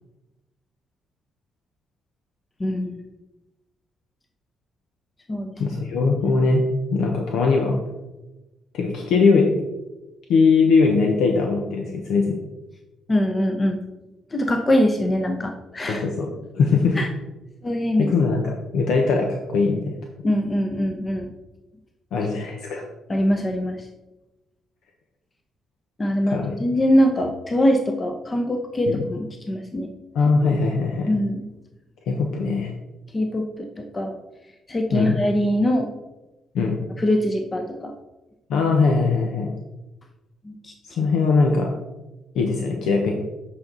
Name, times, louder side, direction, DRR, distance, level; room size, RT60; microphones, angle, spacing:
voice 1, 2.6-2.9 5.3-5.6 13.1-13.8 14.3-16.0 17.0-17.1 17.6-18.1 20.2-21.3 23.1-23.9 26.0-29.9 31.1-31.5 33.1-34.1 34.7-35.9 37.0-37.9 40.4-40.7 41.0-41.1, left 1 dB, 25° left, 4 dB, 0.9 m, -23 dB
voice 2, 5.6-6.6 6.9-7.8 8.7-9.6 10.3-12.4 15.9-16.3 16.5-17.0 18.0-19.9 22.1-22.8 26.3-26.5 28.9-29.0 30.1-31.1 32.1-32.7 34.9-35.2 36.5-36.8 38.5-39.5 41.0-41.7 42.3-43.1, left 4 dB, 80° left, 1 dB, 1.0 m, -20 dB
8.7 x 5.6 x 4.0 m, 1.0 s
cardioid pair, 90°, 0 cm